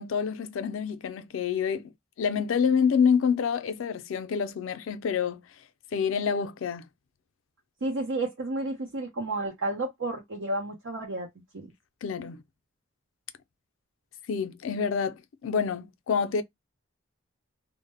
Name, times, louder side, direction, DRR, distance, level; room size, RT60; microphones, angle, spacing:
voice 1, 0.0-1.9 2.2-5.4 5.9-6.8 12.0-12.4 14.3-16.4, left 6 dB, 75° left, 0.4 m, -27 dB
voice 2, 7.8-11.3 11.5-11.7, right 2 dB, 80° right, 0.7 m, -31 dB
2.0 x 2.0 x 3.3 m
head